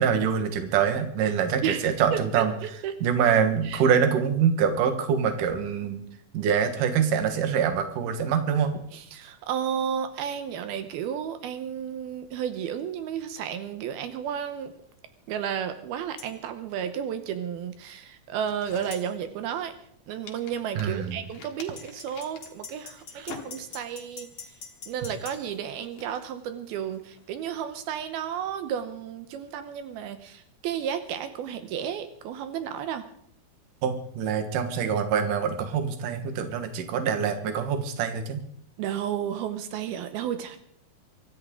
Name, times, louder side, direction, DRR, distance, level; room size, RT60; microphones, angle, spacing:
voice 1, 0.0-2.5 3.0-6.0 6.3-8.8 20.8-21.2 23.2-23.3 33.8-38.4, right 7 dB, 65° right, 7 dB, 2.8 m, -25 dB
voice 2, 1.6-3.0 3.6-3.8 8.9-14.7 15.3-19.7 20.1-24.3 24.9-33.1 38.8-40.6, right 9 dB, 80° right, 9 dB, 2.8 m, -32 dB
sound 1, 16.2-16.3 18.9-19.1 21.8-25.4, left 4 dB, 30° left, 2.1 m, -43 dB
sound 2, 18.4-19.9 20.3-24.1 24.4-24.8 25.2-27.6, left 5 dB, 65° left, 3.3 m, -48 dB
24.0 x 13.5 x 3.8 m, 0.68 s
omnidirectional pair, 4.5 m